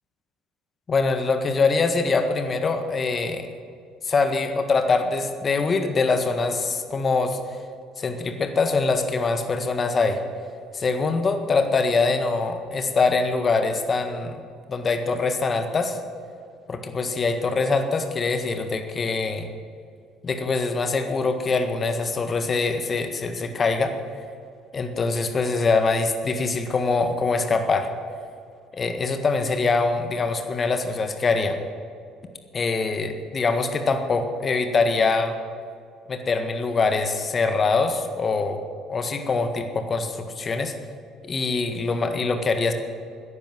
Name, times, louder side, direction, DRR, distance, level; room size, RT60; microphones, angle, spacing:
voice 1, 0.9-3.5 4.0-7.6 8.0-10.2 10.7-14.4 14.7-16.0 16.7-19.5 20.2-23.9 24.7-27.9 28.8-31.6 32.5-35.3 36.1-38.6 38.9-40.7 41.2-42.7, left 4 dB, 35° left, 6 dB, 1.6 m, -23 dB
15.0 x 10.5 x 7.7 m, 2.3 s
figure-of-eight pair, 55°, 0 cm